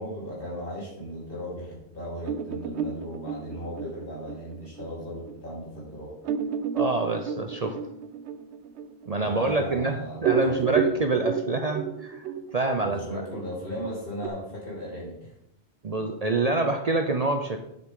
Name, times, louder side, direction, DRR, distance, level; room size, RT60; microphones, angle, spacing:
voice 1, 0.0-6.1 9.2-10.9 12.8-15.3, equal, 55° left, -6 dB, 4.2 m, -36 dB
sound 1, 2.2-5.3 5.8-5.9 6.2-9.9 10.1-14.3, right 6 dB, 80° right, 0.9 m, -31 dB
voice 2, 6.7-7.8 9.1-12.3 12.5-13.2 15.8-17.6, right 3 dB, 40° right, 5 dB, 0.7 m, -26 dB
9.4 x 7.8 x 3.7 m, 0.79 s
omnidirectional pair, 1.1 m